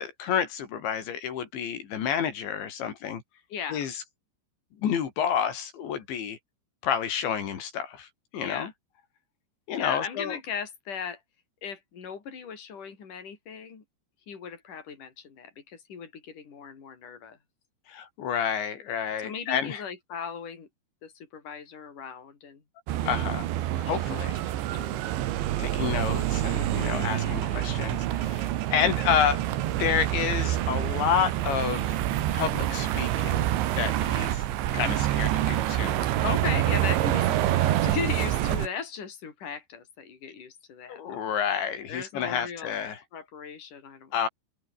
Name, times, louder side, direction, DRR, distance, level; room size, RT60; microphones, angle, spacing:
voice 1, 0.0-3.2 3.7-4.0 4.8-6.4 6.8-8.1 8.3-8.7 9.7-10.4 17.9-19.8 23.0-23.5 23.9-24.4 25.6-29.4 29.7-32.0 32.3-33.5 33.8-34.4 34.7-36.0 40.9-43.0 44.1-44.3, left 8 dB, 80° left, 5.6 m, -29 dB
voice 2, 3.5-3.9 8.4-8.7 9.8-11.2 11.6-13.8 14.3-17.4 19.2-20.7 21.0-22.6 23.0-23.3 23.7-24.2 24.5-25.1 26.9-27.4 36.0-41.3 41.9-42.7 43.1-44.3, left 6 dB, 45° left, 6.1 m, -37 dB
sound 1, 22.9-38.7, right 13 dB, 85° right, 3.9 m, -27 dB
omnidirectional pair, 5.1 m